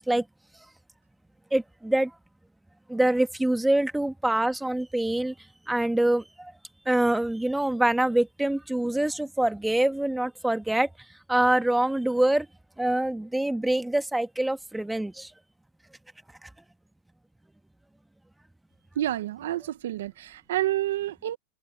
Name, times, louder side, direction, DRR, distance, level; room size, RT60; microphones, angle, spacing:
voice 1, 1.5-2.1 2.9-5.3 5.7-6.5 6.8-10.9 11.3-12.5 12.8-15.3 16.4-16.5, right 1 dB, 5° right, 1.4 m, -25 dB
voice 2, 19.0-21.4, right 13 dB, 80° right, 1.0 m, -29 dB
supercardioid pair, 135°, 0 cm